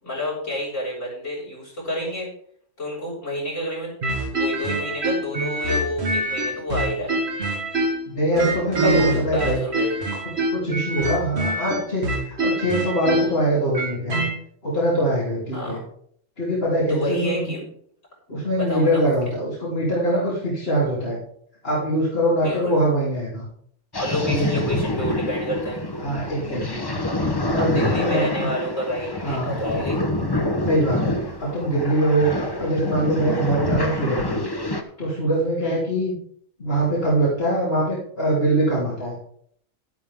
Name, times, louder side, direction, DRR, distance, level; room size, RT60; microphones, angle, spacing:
voice 1, 0.0-2.3 2.8-4.0 4.2-7.2 8.8-10.0 15.5-15.8 16.9-17.6 18.5-19.0 22.4-22.8 24.0-25.8 27.6-30.0 35.6-35.8, left 1 dB, 75° left, -5 dB, 6.9 m, -29 dB
sound 1, 4.0-8.1 8.4-14.3, right 1 dB, 55° right, 1.9 m, -24 dB
voice 2, 8.0-9.6 10.5-14.2 14.6-15.8 16.4-17.5 18.3-21.2 21.6-23.4 24.2-25.0 26.0-26.9 27.5-28.6 29.2-29.5 30.6-31.1 31.4-32.3 32.6-34.4 35.0-36.1 36.6-39.1, right 1 dB, 50° left, -7 dB, 3.9 m, -23 dB
sound 2, 23.9-34.8, left 1 dB, 20° left, 1.0 m, -26 dB
12.5 x 11.5 x 3.8 m, 0.63 s
omnidirectional pair, 1.3 m